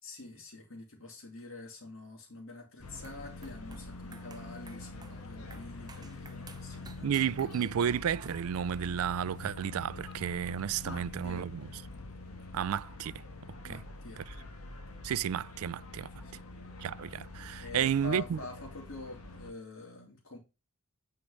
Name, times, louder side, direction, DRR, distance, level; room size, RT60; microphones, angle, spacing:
voice 1, 0.0-7.1 10.8-11.5 13.6-14.2 16.2-16.5 17.6-20.4, left 3 dB, 60° left, 3.0 m, -46 dB
sound 1, 2.8-19.5, left 2 dB, 80° left, 1.5 m, -46 dB
sound 2, 2.9-8.8, right 5 dB, 20° right, 0.6 m, -55 dB
voice 2, 7.0-11.6 12.5-13.1 13.6-13.8 15.0-16.1 16.8-18.4, right 8 dB, 75° right, 0.3 m, -32 dB
9.6 x 4.7 x 5.1 m
head